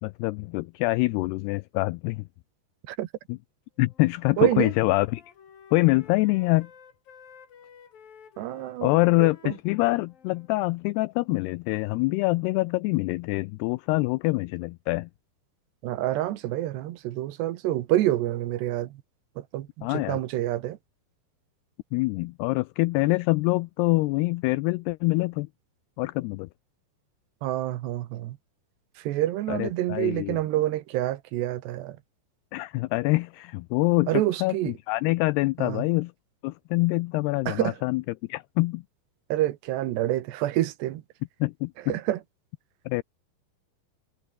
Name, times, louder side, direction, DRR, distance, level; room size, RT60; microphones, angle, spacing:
voice 1, 0.0-2.3 3.3-3.4 3.8-5.2 5.7-6.7 8.8-15.1 19.8-20.2 21.9-25.5 26.0-26.5 29.5-30.4 32.5-34.1 34.4-36.1 36.4-38.0 38.3-38.8 41.4-41.7 42.9-43.0, left 22 dB, 85° left, 2.3 m, -25 dB
Wind instrument woodwind instrument, 3.8-10.5, left 7 dB, 55° left, 4.8 m, -53 dB
voice 2, 4.4-4.7 8.4-8.9 9.2-9.5 15.8-19.0 19.4-20.8 27.4-28.4 29.0-32.0 34.1-34.7 35.6-35.8 37.5-37.8 39.3-41.0 41.9-42.2, right 14 dB, 75° right, 3.2 m, -27 dB
omnidirectional pair, 5.2 m